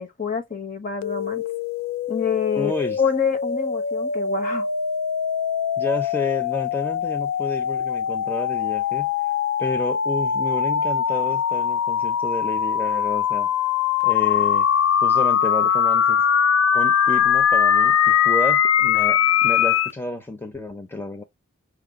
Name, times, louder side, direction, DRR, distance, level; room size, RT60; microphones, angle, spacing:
voice 1, 0.0-1.4 2.1-2.7 3.0-4.7, left 6 dB, 40° left, 0.9 m, -26 dB
sound 1, 1.0-19.9, left 8 dB, 70° left, 0.3 m, -22 dB
voice 2, 2.6-3.0 5.8-9.1 9.6-13.5 14.0-14.7 15.0-16.2 16.7-21.2, left 2 dB, 10° left, 0.5 m, -30 dB
5.8 x 2.2 x 3.6 m
head